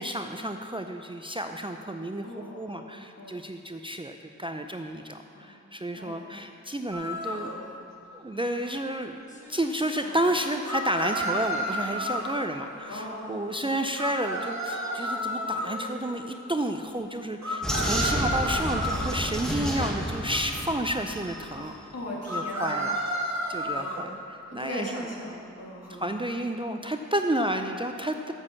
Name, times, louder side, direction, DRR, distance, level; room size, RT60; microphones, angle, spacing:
voice 1, 0.0-2.3 2.6-7.5 8.1-9.2 9.5-21.7 22.3-22.9 23.5-25.1 25.9-28.3, right 1 dB, 15° right, 5 dB, 0.5 m, -31 dB
voice 2, 2.2-2.9 3.2-3.4 5.3-5.6 6.0-6.2 7.2-7.8 8.3-8.5 10.0-10.2 12.9-13.4 15.4-15.7 18.2-18.4 18.8-19.0 21.5-22.8 23.6-23.9 24.5-26.1, left 1 dB, 55° left, -3 dB, 2.1 m, -40 dB
sound 1, 6.9-7.5 10.7-12.4 14.0-15.8 17.4-19.2 22.3-24.0, equal, 65° right, 1.4 m, -31 dB
sound 2, 8.7-17.3, equal, 25° left, 1.5 m, -48 dB
Vehicle, 17.6-21.6, equal, ahead, 1.4 m, -30 dB
7.4 x 6.4 x 7.2 m, 2.9 s
wide cardioid pair, 50°, 30 cm